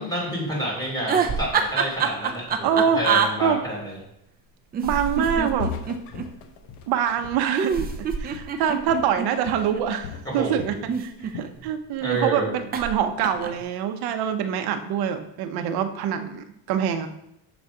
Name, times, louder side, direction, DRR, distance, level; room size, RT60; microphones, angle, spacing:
voice 1, 0.0-4.0 10.2-10.8 12.0-12.5, right 1 dB, 10° left, -4 dB, 2.6 m, -29 dB
sound 1, 1.1-3.3 4.7-6.3 7.5-9.8 10.7-11.7 12.7-12.9 13.2-13.6, right 6 dB, 25° right, 0.3 m, -25 dB
voice 2, 2.6-3.0 3.4-3.6 4.8-5.8 6.9-17.1, right 8 dB, 60° right, 8 dB, 0.8 m, -25 dB
Walk footsteps, 5.1-5.3 5.6-8.6 8.9-9.2 9.5-10.8 11.2-11.6, left 6 dB, 65° left, 0.8 m, -38 dB
6.9 x 4.1 x 4.8 m, 0.78 s
cardioid pair, 150°, 44 cm